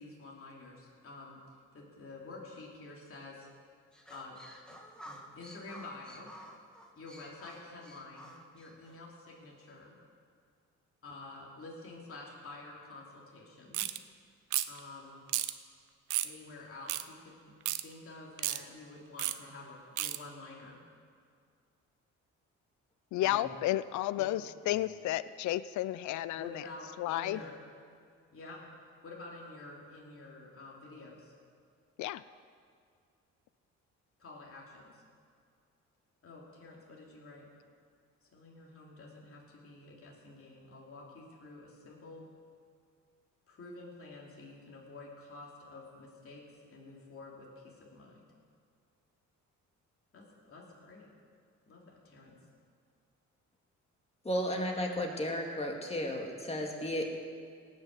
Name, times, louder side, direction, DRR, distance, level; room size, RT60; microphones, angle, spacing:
voice 1, 0.0-1.4 1.7-3.5 4.1-4.3 5.0-6.3 7.0-9.9 11.0-13.9 14.7-15.2 16.2-17.5 17.8-20.8 23.2-23.5 24.2-24.3 26.3-27.5 28.3-28.6 29.0-31.3 34.2-35.0 36.2-37.5 38.3-42.3 43.5-48.3 50.1-51.1 51.7-52.4, left 2 dB, 45° left, 2.9 m, -49 dB
sound 1, 3.9-9.0, equal, 5° left, 1.7 m, -52 dB
sound 2, 13.7-14.0 14.5-14.8 15.3-15.5 16.1-16.3 16.9-17.0 17.7-17.8 18.4-18.6 19.2-19.4 20.0-20.2, right 14 dB, 80° right, 0.6 m, -32 dB
voice 2, 23.1-26.5 27.0-27.4 32.0-32.2, left 14 dB, 70° left, 0.5 m, -32 dB
voice 3, 54.2-57.1, equal, 20° left, 2.3 m, -34 dB
18.0 x 6.5 x 7.6 m
cardioid pair, 90°, 30 cm